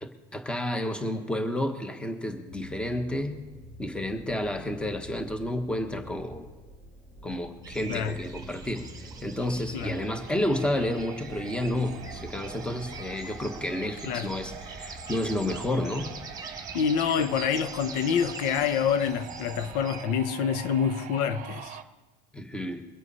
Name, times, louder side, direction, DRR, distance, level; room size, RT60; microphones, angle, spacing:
voice 1, 0.0-3.4 3.8-6.5 7.2-8.8 9.2-16.1 22.3-22.8, left 1 dB, 5° left, 1.2 m, -31 dB
sound 1, 2.5-17.9 18.7-18.8, left 2 dB, 30° left, 1.6 m, -49 dB
sound 2, 7.6-20.0, right 4 dB, 20° right, 1.5 m, -43 dB
sound 3, 9.8-21.8, right 9 dB, 40° right, 0.9 m, -45 dB
voice 2, 16.7-21.8, left 7 dB, 75° left, 1.0 m, -27 dB
23.0 x 8.0 x 5.5 m
cardioid pair, 145°, 21 cm